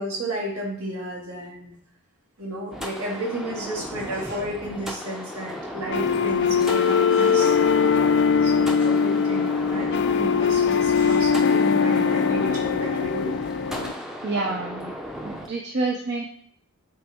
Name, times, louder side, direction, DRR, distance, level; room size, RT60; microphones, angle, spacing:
voice 1, 0.0-1.8 2.4-7.5 8.4-13.3, right 1 dB, 75° right, -4 dB, 2.2 m, -32 dB
sound 1, 2.7-15.5, equal, ahead, 0.6 m, -36 dB
sound 2, 5.9-13.9, left 6 dB, 50° left, 0.3 m, -21 dB
voice 2, 14.2-14.9 15.2-16.2, right 3 dB, 50° right, 1 dB, 0.6 m, -28 dB
7.9 x 4.1 x 3.6 m, 0.63 s
head